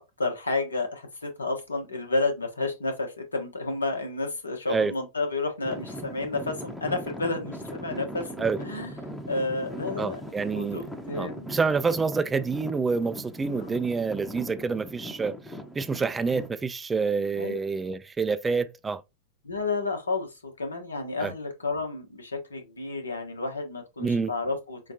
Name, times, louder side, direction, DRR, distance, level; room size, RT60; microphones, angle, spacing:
voice 1, 0.2-8.9 9.3-10.2 10.5-11.5 13.4-13.8 17.3-17.6 19.4-24.9, left 3 dB, 75° left, 1.1 m, -31 dB
Traffic noise roadway noise / Engine, 5.6-16.5, equal, 5° left, 0.8 m, -39 dB
voice 2, 10.0-10.8 11.2-19.0 21.2-21.3 24.0-24.3, right 4 dB, 15° right, 0.4 m, -27 dB
5.7 x 2.4 x 2.7 m
figure-of-eight pair, 90°, 0 cm